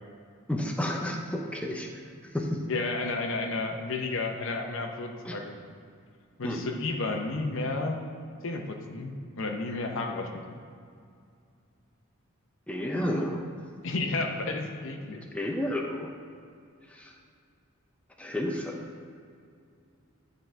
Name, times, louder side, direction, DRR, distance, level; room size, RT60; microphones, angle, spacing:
voice 1, 0.5-1.9 2.2-2.6 5.2-5.4 6.4-6.6 12.7-13.4 15.3-16.1 16.8-17.2 18.2-18.8, left 1 dB, 5° left, 0 dB, 0.5 m, -31 dB
voice 2, 2.7-5.6 6.4-8.0 8.4-10.4 13.8-15.2, left 3 dB, 65° left, 4 dB, 0.7 m, -32 dB
10.5 x 3.9 x 4.4 m, 2.3 s
head